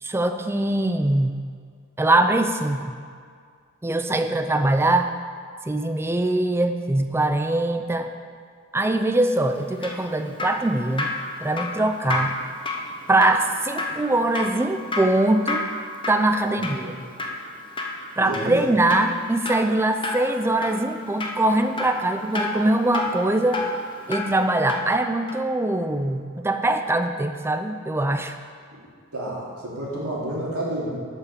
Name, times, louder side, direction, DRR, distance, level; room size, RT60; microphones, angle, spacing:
voice 1, 0.0-1.4 2.0-3.0 3.8-5.1 5.6-8.1 8.7-11.1 11.4-12.4 13.1-15.6 16.1-16.9 18.2-23.7 24.1-28.4, right 2 dB, 10° right, 8 dB, 0.4 m, -22 dB
Drip, 9.5-25.0 25.3-25.4, left 2 dB, 20° left, 0.7 m, -31 dB
voice 2, 16.4-16.9 18.2-18.6 29.1-30.9, right 1 dB, 85° right, -5 dB, 2.7 m, -30 dB
8.0 x 5.7 x 6.9 m, 2.1 s
head